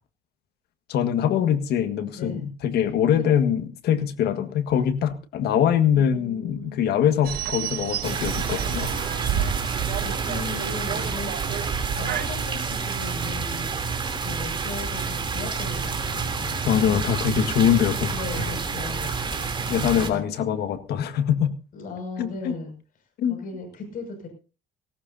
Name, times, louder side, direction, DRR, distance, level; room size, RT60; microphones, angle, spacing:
voice 1, 0.9-8.9 16.7-18.5 19.7-21.5 22.2-22.5 23.2-23.4, left 9 dB, 70° left, 10 dB, 1.7 m, -23 dB
voice 2, 2.1-2.5 3.2-3.3 5.9-7.0 10.0-11.6 11.9-17.2 18.1-20.3 21.7-22.7 23.3-24.3, left 3 dB, 55° left, 4 dB, 6.1 m, -37 dB
sound 1, 7.2-12.3, right 9 dB, 65° right, 1.5 m, -30 dB
sound 2, 8.0-20.1, right 5 dB, 30° right, 3.1 m, -29 dB
18.0 x 18.0 x 2.7 m, 0.34 s
cardioid pair, 110°, 17 cm